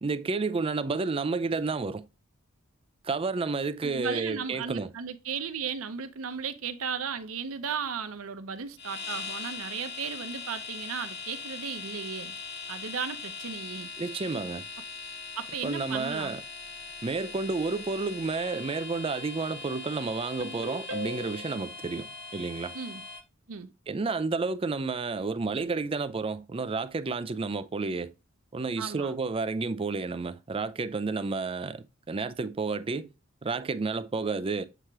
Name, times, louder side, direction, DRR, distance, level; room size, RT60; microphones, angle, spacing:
voice 1, 0.0-2.1 3.0-4.9 14.0-14.7 15.6-16.4 17.0-22.8 23.9-28.1 28.5-33.1 33.4-34.7, right 4 dB, 25° right, 0.4 m, -31 dB
voice 2, 3.8-12.4 12.7-13.9 15.4-16.3 22.7-23.0 23.5-23.7 28.8-29.1, right 6 dB, 90° right, 0.7 m, -35 dB
sound 1, 8.8-23.2, left 4 dB, 60° left, 1.0 m, -41 dB
Ringtone, 20.4-21.6, left 1 dB, 75° right, 1.3 m, -38 dB
8.0 x 3.0 x 4.6 m
head